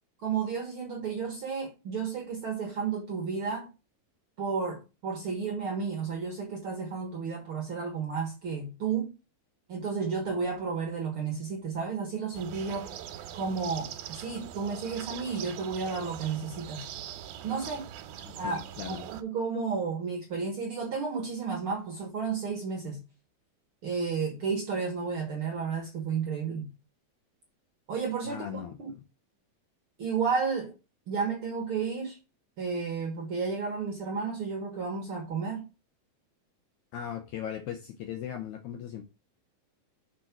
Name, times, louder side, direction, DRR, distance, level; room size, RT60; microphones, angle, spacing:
voice 1, 0.2-3.7 4.4-9.1 9.7-12.9 13.3-16.9 17.4-17.9 18.3-23.0 23.8-26.7 27.9-28.9 30.0-30.7 31.1-32.2 32.6-35.7, right 5 dB, 55° right, 1.6 m, -32 dB
sound 1, 12.3-19.2, right 10 dB, 90° right, 2.7 m, -42 dB
voice 2, 18.2-19.0 28.3-28.8 36.9-39.0, left 9 dB, 75° left, 1.8 m, -38 dB
6.4 x 4.5 x 5.9 m
omnidirectional pair, 4.2 m